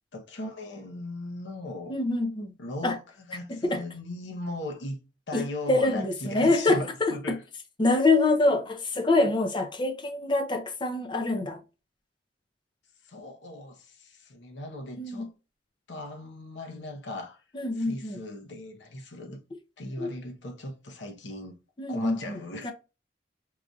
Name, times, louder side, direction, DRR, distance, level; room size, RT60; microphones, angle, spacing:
voice 1, 0.1-2.0 2.6-7.4 13.0-15.3 15.9-17.4 17.7-19.4 19.8-21.6 21.9-22.7, left 1 dB, 70° left, 0.8 m, -38 dB
voice 2, 1.9-2.5 2.8-3.0 3.5-3.8 5.3-7.4 7.8-11.6 15.0-15.3 17.5-18.2 20.0-20.1 21.8-22.4 22.6-22.7, left 2 dB, 25° left, 0.6 m, -25 dB
4.7 x 2.6 x 2.3 m
head